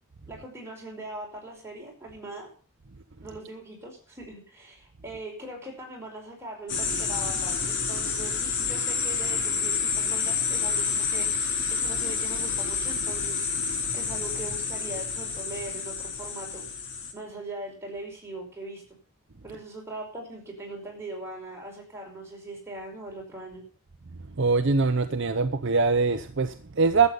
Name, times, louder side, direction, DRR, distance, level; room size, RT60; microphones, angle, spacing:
voice 1, 0.3-2.5 3.2-11.3 11.7-13.5 13.9-16.6 17.1-18.8 19.4-23.6, right 2 dB, 10° right, 5.0 m, -40 dB
sound 1, 6.7-17.1, left 5 dB, 55° left, 2.6 m, -29 dB
voice 2, 24.4-27.1, right 4 dB, 55° right, 0.7 m, -23 dB
12.5 x 8.2 x 6.9 m
head